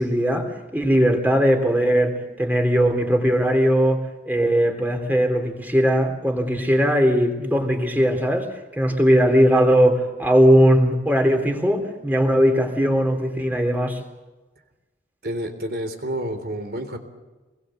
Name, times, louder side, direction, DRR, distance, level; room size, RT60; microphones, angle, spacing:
voice 1, 0.0-8.5 8.8-14.0, equal, 10° right, 3 dB, 3.5 m, -19 dB
voice 2, 15.2-17.0, right 1 dB, 55° right, 7 dB, 3.6 m, -29 dB
27.5 x 21.5 x 7.9 m, 1.2 s
head